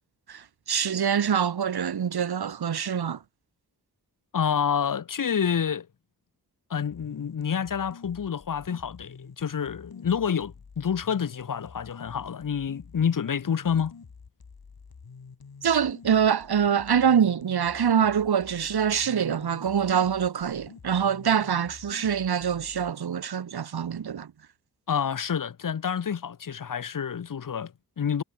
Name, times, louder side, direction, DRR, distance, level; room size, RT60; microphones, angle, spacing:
voice 1, 0.3-3.2 15.6-24.3, right 8 dB, 85° right, 1.1 m, -25 dB
voice 2, 4.3-5.9 6.7-13.9 24.9-28.2, left 7 dB, 60° left, 0.8 m, -28 dB
sound 1, 6.9-22.9, left 5 dB, 75° left, 4.3 m, -48 dB
wide cardioid pair, 65°, 37 cm